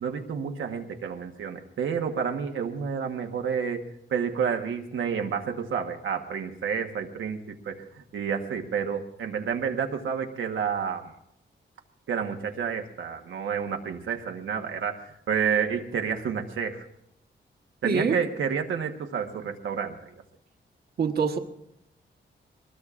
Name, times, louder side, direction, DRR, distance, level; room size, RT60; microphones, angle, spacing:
voice 1, 0.0-7.4 7.6-7.8 8.1-11.1 12.1-16.8 17.8-20.1, right 7 dB, 90° right, 3 dB, 1.2 m, -30 dB
voice 2, 17.8-18.2 21.0-21.4, right 5 dB, 55° right, 4 dB, 1.3 m, -24 dB
23.5 x 20.0 x 2.5 m, 0.78 s
wide cardioid pair, 170°, 20 cm